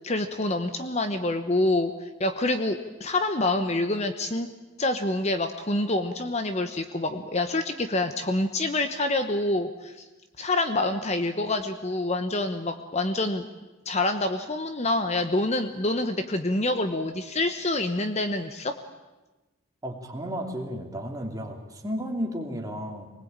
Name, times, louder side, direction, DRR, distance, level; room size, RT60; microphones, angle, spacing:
voice 1, 0.0-1.9 2.2-4.5 4.8-10.1 10.4-13.5 13.8-18.7, left 2 dB, 35° left, 8 dB, 1.1 m, -27 dB
voice 2, 19.8-23.1, equal, 15° right, 1 dB, 2.8 m, -33 dB
24.5 x 20.0 x 8.9 m, 1.1 s
head